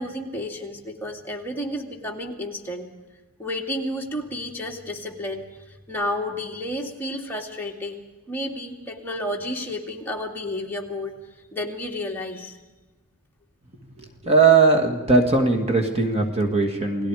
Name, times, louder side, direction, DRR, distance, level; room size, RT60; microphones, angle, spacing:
voice 1, 0.0-2.9 3.4-5.5 5.9-11.1 11.5-12.6, left 1 dB, 10° left, 0 dB, 2.5 m, -31 dB
voice 2, 14.2-17.1, right 4 dB, 30° right, 3 dB, 2.0 m, -19 dB
29.5 x 19.5 x 4.9 m, 1.2 s
head